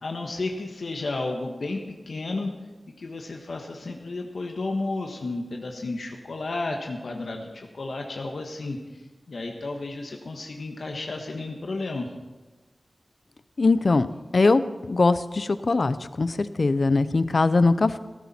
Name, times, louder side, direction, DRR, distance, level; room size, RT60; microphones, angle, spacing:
voice 1, 0.0-2.5 3.0-9.0 9.3-12.1, left 2 dB, 75° left, 2 dB, 1.4 m, -32 dB
voice 2, 13.6-14.1 14.3-18.0, left 3 dB, 60° left, 13 dB, 0.6 m, -21 dB
18.5 x 11.5 x 4.4 m, 1.2 s
wide cardioid pair, 65°, 0 cm